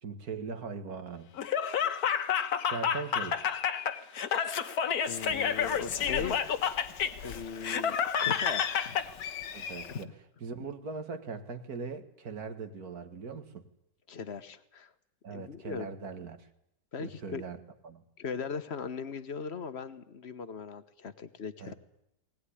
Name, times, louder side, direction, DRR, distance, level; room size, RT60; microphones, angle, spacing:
voice 1, 0.0-1.3 2.7-3.4 9.5-10.1 10.4-13.7 15.2-16.4 17.0-17.6 17.8-18.0 21.6-21.7, right 5 dB, 55° right, 9 dB, 2.1 m, -40 dB
Laughter, 1.4-9.1, left 7 dB, 60° left, 1.5 m, -30 dB
Bird, 5.0-10.0, left 9 dB, 75° left, 1.7 m, -40 dB
voice 2, 5.0-6.4 7.2-9.0 10.0-10.1 14.1-14.9 15.3-15.9 16.9-17.4 18.2-21.7, left 5 dB, 40° left, 12 dB, 1.2 m, -39 dB
19.5 x 19.0 x 10.0 m, 0.77 s
omnidirectional pair, 2.0 m